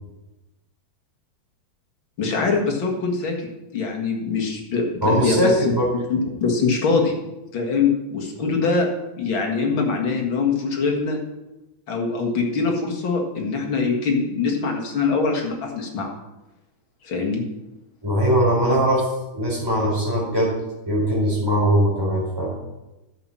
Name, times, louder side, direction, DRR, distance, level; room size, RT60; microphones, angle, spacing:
voice 1, 2.2-3.5 3.7-5.5 6.1-7.1 7.5-8.9 9.2-11.2 11.9-16.1 17.0-17.4, left 4 dB, 65° left, 1 dB, 2.6 m, -23 dB
voice 2, 5.0-5.9 8.4-8.5 18.0-20.5 20.8-22.5, equal, 10° right, -4 dB, 4.4 m, -21 dB
11.0 x 7.5 x 5.6 m, 1.0 s
omnidirectional pair, 2.3 m